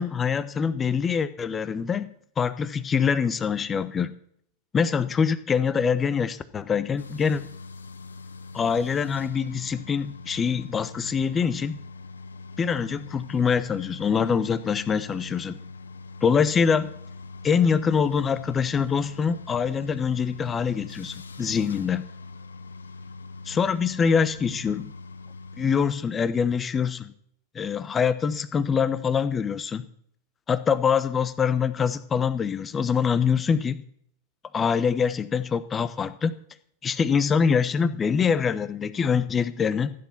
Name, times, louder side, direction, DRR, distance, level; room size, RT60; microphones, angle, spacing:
voice 1, 0.0-2.1 2.4-4.1 4.7-7.4 8.5-11.8 12.6-15.6 16.2-16.9 17.4-22.0 23.5-24.9 25.6-27.1 27.5-29.8 30.5-33.8 34.5-36.3 36.8-39.9, left 6 dB, 20° left, 15 dB, 1.0 m, -24 dB
sound 1, 7.0-25.9, left 3 dB, 70° left, 0.9 m, -42 dB
16.0 x 10.5 x 5.9 m, 0.67 s
figure-of-eight pair, 90°, 0 cm